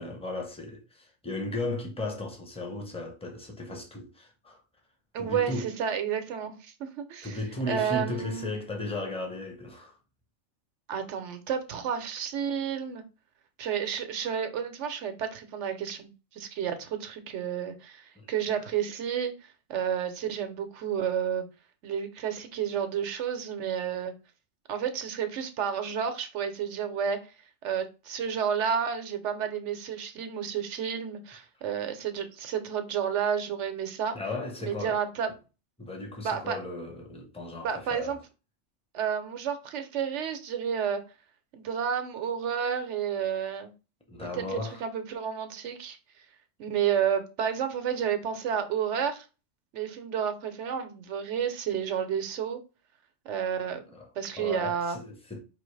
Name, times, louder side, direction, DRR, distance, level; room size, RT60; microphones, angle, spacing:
voice 1, 0.0-4.6 5.2-5.7 7.2-10.0 18.2-18.3 18.6-18.7 34.1-35.0 35.8-38.1 44.1-44.8 53.9-54.1 54.4-55.4, left 2 dB, 5° left, 0.8 m, -35 dB
voice 2, 5.1-7.4 7.7-8.6 10.9-13.0 13.6-21.4 21.8-24.1 24.7-27.2 27.6-34.2 34.6-35.3 36.2-36.6 37.6-38.2 38.9-41.0 41.5-43.7 44.4-46.0 46.6-49.3 49.7-52.6 53.2-53.8 54.2-55.0, right 8 dB, 70° right, 1.0 m, -31 dB
4.7 x 2.9 x 3.2 m
omnidirectional pair, 1.3 m